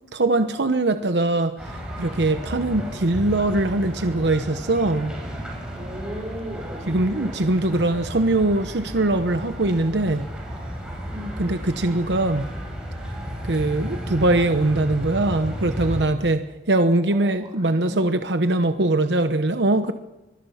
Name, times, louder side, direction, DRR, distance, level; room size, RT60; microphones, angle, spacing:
voice 1, 0.1-5.1 6.9-10.3 11.4-12.5 13.4-19.9, right 2 dB, 75° right, 8 dB, 1.0 m, -22 dB
Field Recording Downtown São Paulo, 1.6-16.0, equal, 5° right, 7.4 m, -33 dB
voice 2, 5.8-7.4 11.1-11.5 17.1-18.0, equal, 20° right, 3 dB, 5.3 m, -37 dB
25.0 x 23.5 x 5.8 m, 1.0 s
head